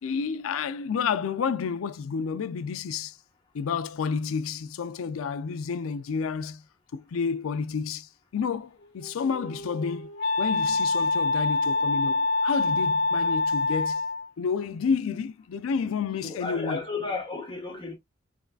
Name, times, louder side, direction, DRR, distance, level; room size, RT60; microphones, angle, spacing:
voice 1, 0.0-3.2 3.5-6.6 6.9-10.1 10.4-14.0 14.4-16.8, left 6 dB, 90° left, 0.4 m, -30 dB
Wind instrument woodwind instrument, 8.8-14.3, left 3 dB, 55° left, 0.9 m, -26 dB
voice 2, 16.2-17.9, left 4 dB, 25° left, 1.4 m, -33 dB
3.5 x 3.1 x 2.3 m
head